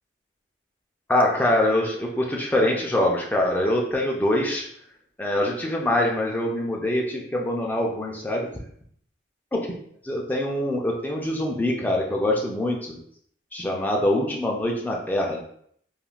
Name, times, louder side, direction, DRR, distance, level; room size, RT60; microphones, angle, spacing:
voice 1, 1.1-4.7 5.2-8.5 9.5-9.6 10.0-13.0 13.5-15.4, left 1 dB, 10° left, -1 dB, 0.4 m, -24 dB
3.5 x 2.4 x 2.3 m, 0.65 s
head